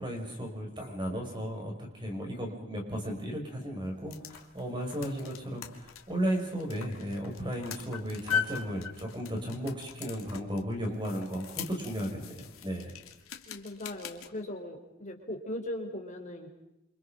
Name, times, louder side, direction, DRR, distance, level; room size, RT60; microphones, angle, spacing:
voice 1, 0.0-12.9, equal, 20° right, 1 dB, 6.6 m, -35 dB
sound 1, 3.8-14.3, left 7 dB, 85° left, 2.6 m, -40 dB
voice 2, 13.5-16.5, left 1 dB, 35° left, 2 dB, 4.7 m, -39 dB
28.5 x 27.5 x 5.4 m, 0.89 s
head